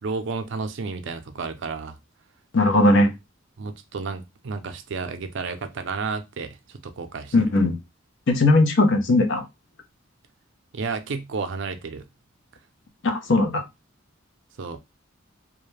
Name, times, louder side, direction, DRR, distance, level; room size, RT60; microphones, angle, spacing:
voice 1, 0.0-2.0 3.6-7.3 10.7-12.0 14.6-14.8, right 4 dB, 65° right, 0.5 m, -31 dB
voice 2, 2.5-3.1 7.3-7.7 8.3-9.4 13.0-13.6, left 2 dB, 65° left, 0.6 m, -18 dB
2.4 x 2.1 x 3.1 m
head